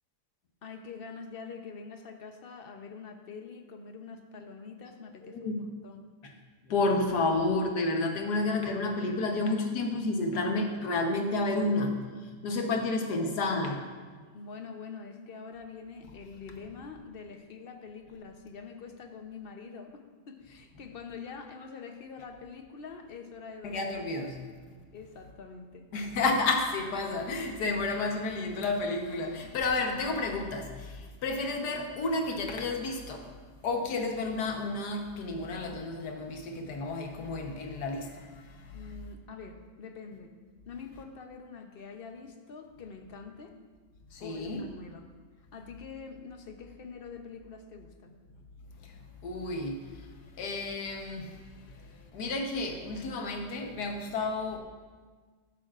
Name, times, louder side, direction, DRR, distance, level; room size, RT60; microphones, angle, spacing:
voice 1, 0.6-6.0 14.3-23.9 24.9-25.9 38.7-40.3 40.7-43.5 44.2-45.0 45.4-48.1, left 5 dB, 50° left, 5 dB, 0.7 m, -45 dB
voice 2, 5.2-5.6 6.2-6.3 6.7-11.9 12.4-13.8 23.6-24.8 25.9-33.3 33.6-38.8 44.1-44.7 48.8-54.6, left 2 dB, 75° left, 3 dB, 1.6 m, -31 dB
12.5 x 10.5 x 2.5 m, 1.5 s
omnidirectional pair, 1.8 m